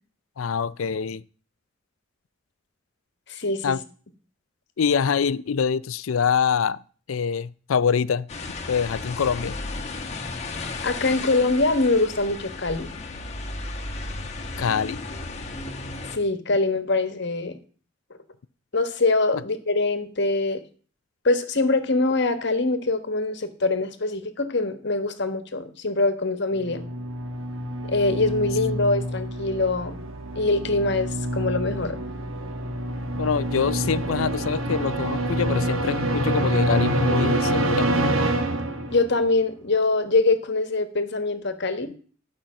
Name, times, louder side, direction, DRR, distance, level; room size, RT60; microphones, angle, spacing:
voice 1, 0.4-1.2 3.6-3.8 4.8-6.8 7.1-8.3 8.7-9.5 14.6-15.0 33.2-37.9, left 6 dB, 80° left, 0.5 m, -24 dB
voice 2, 3.3-3.7 10.8-12.9 16.1-17.6 18.7-20.6 21.2-26.8 27.9-30.0 30.3-32.0 38.9-41.9, left 3 dB, 55° left, 1.4 m, -23 dB
sound 1, 8.3-16.2, left 3 dB, 35° left, 1.3 m, -34 dB
sound 2, 26.6-39.2, right 1 dB, 80° right, 1.5 m, -26 dB
11.5 x 5.6 x 7.5 m
head